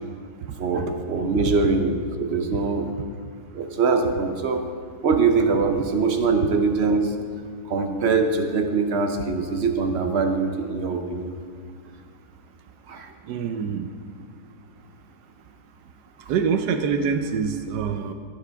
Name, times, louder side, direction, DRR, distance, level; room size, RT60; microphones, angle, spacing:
voice 1, 0.6-2.9 3.5-4.6 5.0-7.1 7.7-11.4 12.9-13.1, right 4 dB, 50° right, 5 dB, 0.9 m, -23 dB
voice 2, 13.3-13.9 16.3-18.1, right 6 dB, 85° right, 6 dB, 1.2 m, -25 dB
16.0 x 7.1 x 3.5 m, 2.3 s
omnidirectional pair, 1.7 m